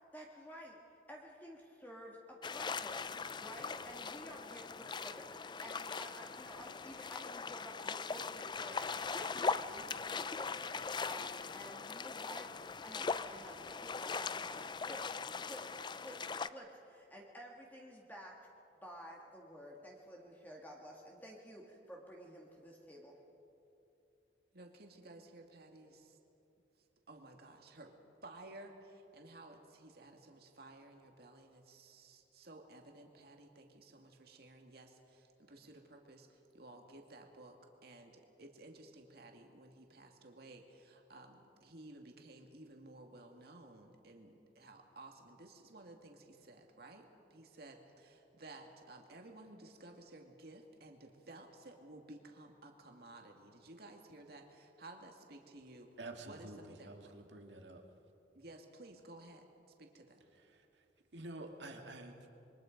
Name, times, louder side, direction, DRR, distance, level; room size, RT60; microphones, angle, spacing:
voice 1, 0.1-0.8 1.1-18.3 18.8-23.2, equal, 10° left, -2 dB, 1.9 m, -52 dB
sound 1, 2.4-16.5, left 5 dB, 25° left, 0.4 m, -40 dB
voice 2, 24.5-26.2 27.1-27.9 28.2-37.6 37.8-55.9 56.2-57.1 58.3-59.5 59.8-60.2, right 2 dB, 60° right, 2 dB, 2.2 m, -55 dB
voice 3, 56.0-57.8 61.1-62.1, right 2 dB, 75° right, 3 dB, 2.1 m, -48 dB
27.0 x 23.0 x 5.3 m, 2.9 s
head